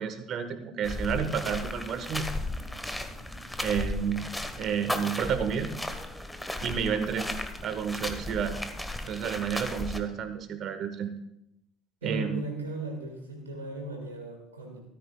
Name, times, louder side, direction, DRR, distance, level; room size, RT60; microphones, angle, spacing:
voice 1, 0.0-2.3 3.6-4.3 4.6-5.7 6.6-7.3 7.6-8.6 9.1-11.1 12.0-12.4, right 7 dB, 50° right, 9 dB, 1.2 m, -30 dB
sound 1, 0.8-10.0, left 1 dB, 5° left, 1.2 m, -35 dB
voice 2, 12.0-14.8, right 2 dB, 85° right, 2 dB, 1.7 m, -36 dB
13.5 x 13.5 x 2.3 m, 0.82 s
figure-of-eight pair, 65°, 0 cm